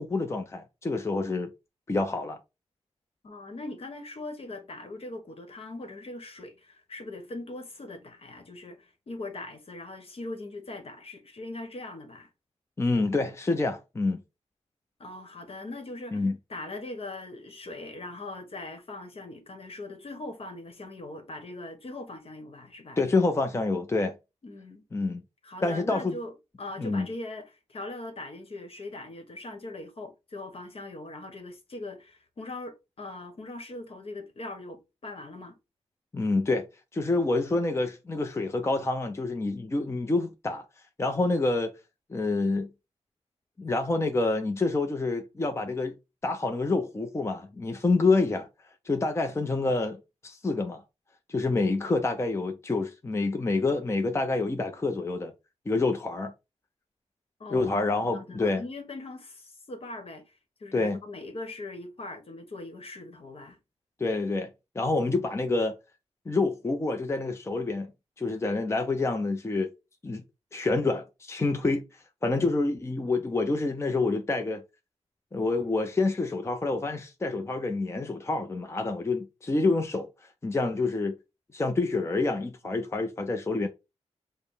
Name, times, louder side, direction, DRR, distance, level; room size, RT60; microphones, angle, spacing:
voice 1, 0.0-1.5 1.9-2.4 12.8-14.2 16.1-16.4 23.0-24.1 24.9-25.2 25.6-26.1 26.8-27.1 36.1-36.6 36.9-40.7 41.0-41.7 42.1-42.7 43.6-45.9 46.2-48.5 48.8-50.8 51.3-55.3 55.7-56.3 57.5-58.6 60.7-61.0 64.0-64.5 64.7-65.7 66.3-67.9 68.2-69.7 70.0-70.2 70.5-71.8 72.2-74.6 75.3-81.1 81.5-83.7, left 3 dB, 25° left, 0.6 m, -27 dB
voice 2, 3.2-12.3 15.0-23.0 24.4-24.8 25.4-35.6 57.4-60.3 60.6-63.6, left 2 dB, 55° left, 1.2 m, -41 dB
5.0 x 2.2 x 4.8 m
cardioid pair, 80°, 11 cm